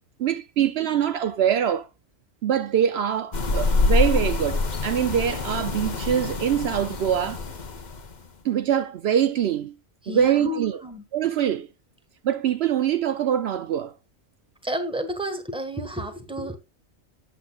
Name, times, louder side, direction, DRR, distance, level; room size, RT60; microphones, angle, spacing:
voice 1, 0.2-1.9 2.4-7.4 8.4-9.7 10.1-10.8 11.1-11.7 12.2-13.9, right 9 dB, 70° right, 0.8 m, -24 dB
sound 1, 3.3-8.3, left 3 dB, 40° left, 1.0 m, -26 dB
voice 2, 10.0-11.0 14.6-16.6, equal, 5° right, 1.3 m, -31 dB
8.4 x 7.5 x 2.3 m
omnidirectional pair, 1.2 m